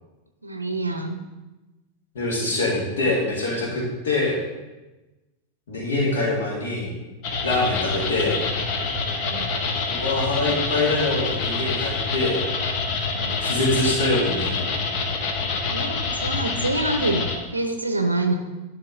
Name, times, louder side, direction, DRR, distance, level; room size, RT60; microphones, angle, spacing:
voice 1, 0.4-1.2 9.2-9.5 13.1-13.4 15.7-18.4, right 2 dB, 80° right, 5 dB, 0.5 m, -26 dB
voice 2, 2.1-4.4 5.7-6.9 7.4-8.4 9.9-12.4 13.2-14.6, left 2 dB, 60° left, -3 dB, 2.1 m, -24 dB
sound 1, 7.2-17.4, left 4 dB, 40° left, 0.8 m, -26 dB
10.5 x 3.5 x 3.6 m, 1.1 s
figure-of-eight pair, 90°, 0 cm